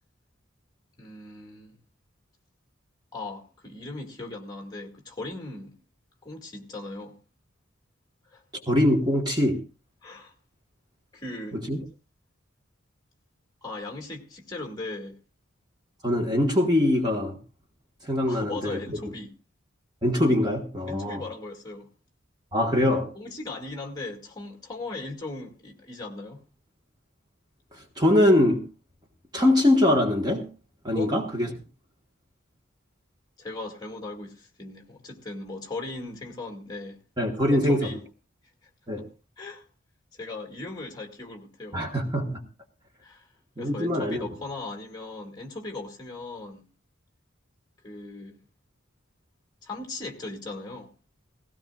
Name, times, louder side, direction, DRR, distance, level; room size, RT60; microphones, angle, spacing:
voice 1, 1.0-1.8 3.1-5.8 6.2-7.2 8.2-8.4 10.0-10.3 11.1-11.6 13.6-15.2 18.3-19.3 20.9-21.9 23.1-26.4 30.9-31.1 33.4-37.0 37.5-38.0 38.6-38.7 39.4-39.7 40.1-41.9 43.0-43.3 43.6-46.6 47.8-48.4 49.6-50.9, left 2 dB, 20° left, 2.2 m, -38 dB
voice 2, 8.7-9.6 11.5-11.8 16.0-17.4 18.0-19.0 20.0-21.2 22.5-23.1 27.7-28.6 29.3-30.5 30.8-31.5 37.2-37.9 38.9-39.0 41.7-42.4 43.6-44.3, left 1 dB, 20° right, 1.4 m, -23 dB
18.0 x 16.5 x 2.4 m
head